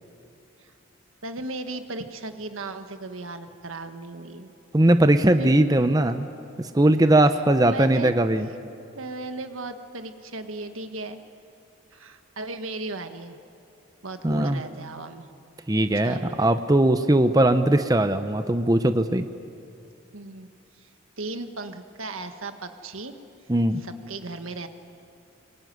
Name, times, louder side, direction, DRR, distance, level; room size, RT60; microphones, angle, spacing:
voice 1, 1.2-4.5 5.4-5.7 7.3-7.4 7.7-8.1 8.9-11.2 11.9-13.4 14.0-15.3 16.0-16.4 20.1-20.9 21.2-23.2 23.8-24.7, right 2 dB, 80° right, 8 dB, 1.6 m, -36 dB
voice 2, 4.7-6.3 6.6-8.5 14.2-14.6 15.7-19.3 23.5-23.8, right 1 dB, 20° right, 9 dB, 0.7 m, -20 dB
24.5 x 22.5 x 9.4 m, 2.6 s
head